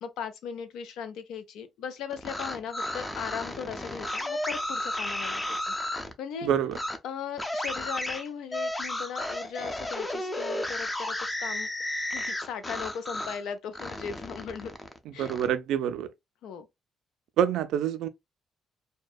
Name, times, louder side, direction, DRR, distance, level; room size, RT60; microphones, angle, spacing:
voice 1, 0.0-5.7 6.2-6.5 7.0-11.7 12.1-14.7 15.1-15.4 16.4-16.7, left 7 dB, 85° left, 0.4 m, -38 dB
sound 1, 2.1-6.1 6.7-7.0 7.4-13.4 13.7-15.5, left 1 dB, 15° left, 0.4 m, -33 dB
voice 2, 6.4-6.8 15.2-16.1 17.4-18.1, right 9 dB, 85° right, 0.3 m, -26 dB
2.6 x 2.1 x 2.2 m
cardioid pair, 90°, 0 cm